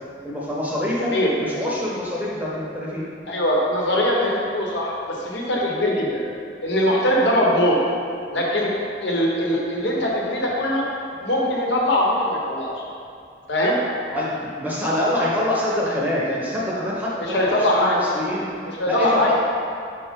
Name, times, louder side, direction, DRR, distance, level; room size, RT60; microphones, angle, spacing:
voice 1, 0.2-3.0 14.1-18.5 18.9-19.3, left 1 dB, 10° right, -6 dB, 0.9 m, -25 dB
voice 2, 3.3-6.2 6.6-7.8 8.3-8.7 9.0-10.8 11.2-12.7 13.5-13.8 17.2-18.0 18.8-19.3, left 1 dB, 70° left, -3 dB, 1.1 m, -21 dB
5.2 x 4.6 x 5.1 m, 2.5 s
head